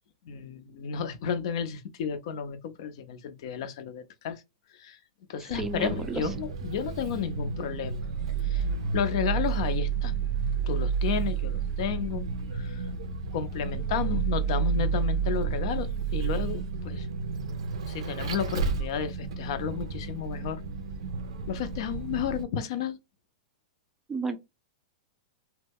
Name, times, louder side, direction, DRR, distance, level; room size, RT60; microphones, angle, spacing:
voice 1, 0.2-4.4 4.7-5.0 5.3-8.1 8.4-8.6 8.9-10.2 10.7-12.2 12.5-12.8 13.3-17.1 17.9-20.6 21.5-23.0, left 7 dB, 60° left, 0.5 m, -32 dB
voice 2, 5.5-6.2 24.1-24.4, right 3 dB, 10° right, 0.3 m, -31 dB
Vehicle, 5.5-22.4, right 6 dB, 75° right, 0.4 m, -31 dB
2.2 x 2.0 x 3.4 m
hypercardioid pair, 125°, 3 cm